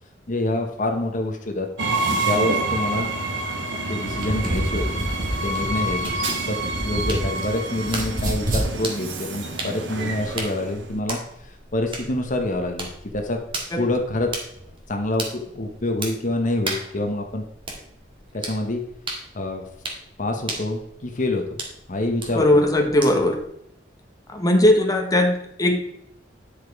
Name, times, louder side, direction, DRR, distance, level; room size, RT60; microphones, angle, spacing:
voice 1, 0.3-1.7 2.2-3.1 3.9-5.0 5.4-6.1 6.5-6.6 6.8-12.9 13.1-13.4 13.8-14.3 14.9-17.5 18.3-18.8 19.3-19.7 20.2-21.6 21.9-22.6, left 1 dB, 45° left, 3 dB, 1.1 m, -26 dB
Train, 1.8-11.0, right 2 dB, 85° right, 1.3 m, -28 dB
sound 1, 4.1-7.5 7.8-8.7, right 1 dB, 50° right, 2.5 m, -27 dB
sound 2, 6.0-23.4, right 2 dB, 30° right, 1.7 m, -37 dB
voice 2, 22.3-23.4 24.3-25.8, left 1 dB, 20° left, 2 dB, 1.2 m, -19 dB
10.0 x 5.1 x 4.7 m, 0.76 s
head